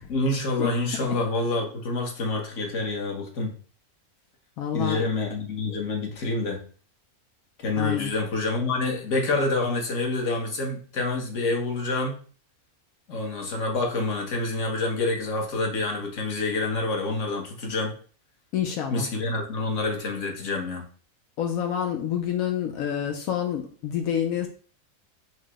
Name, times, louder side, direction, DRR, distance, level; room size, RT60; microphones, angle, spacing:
voice 1, 0.1-3.6 4.7-6.6 7.6-12.2 13.1-17.9 18.9-20.8, left 2 dB, 60° left, 1 dB, 1.3 m, -27 dB
voice 2, 4.6-5.0 7.8-8.1 18.5-19.1 21.4-24.5, left 9 dB, 75° left, 3 dB, 1.0 m, -28 dB
4.7 x 2.1 x 4.6 m, 0.41 s
omnidirectional pair, 1.6 m